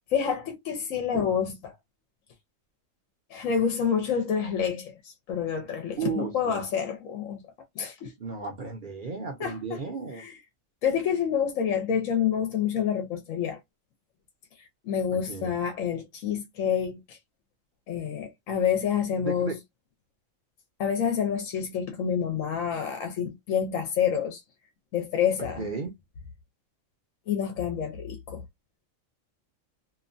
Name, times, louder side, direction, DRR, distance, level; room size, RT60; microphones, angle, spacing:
voice 1, 0.1-1.7 3.3-7.4 7.8-8.1 9.4-9.8 10.1-10.3 10.8-13.6 14.8-17.2 17.9-19.5 20.8-24.4 24.9-25.7 27.3-28.4, left 8 dB, 75° left, 1.1 m, -28 dB
voice 2, 6.0-6.6 8.2-10.2 15.1-15.5 19.2-19.6 25.6-25.9, right 6 dB, 50° right, 0.7 m, -34 dB
2.9 x 2.2 x 2.5 m
omnidirectional pair, 1.4 m